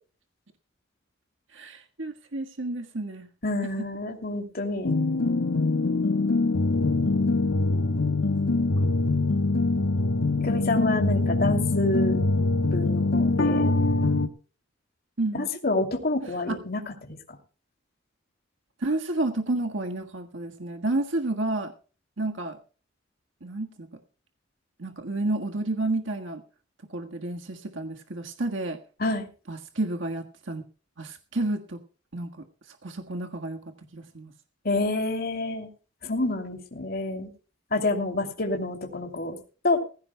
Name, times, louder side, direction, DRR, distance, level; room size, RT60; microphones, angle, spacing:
voice 1, 1.5-3.3 6.4-6.6 8.8-8.9 15.2-15.5 16.3-16.6 18.8-21.7 22.2-22.6 23.4-23.9 24.8-26.4 26.9-28.8 29.5-30.6 31.0-31.8 32.1-32.3 32.7-33.6 33.9-34.3, right 2 dB, 70° right, 4 dB, 1.6 m, -30 dB
voice 2, 3.4-5.0 10.4-12.3 12.7-13.7 15.6-17.2 29.0-29.3 34.6-35.7 36.0-37.3 37.7-39.4 39.6-39.8, left 2 dB, 50° left, 3 dB, 2.7 m, -28 dB
sound 1, 4.8-14.3, left 3 dB, 85° left, 1.3 m, -23 dB
20.0 x 16.0 x 2.2 m, 0.36 s
head